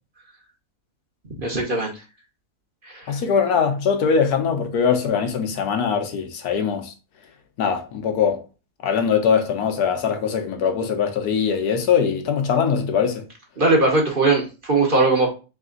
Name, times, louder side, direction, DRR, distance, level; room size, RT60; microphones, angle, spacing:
voice 1, 1.3-1.9 2.8-3.1 13.6-15.3, right 3 dB, 40° right, 0.9 m, -20 dB
voice 2, 3.1-6.9 7.6-8.4 8.8-13.2, left 6 dB, 80° left, 1.3 m, -21 dB
3.4 x 3.3 x 3.8 m
omnidirectional pair, 1.6 m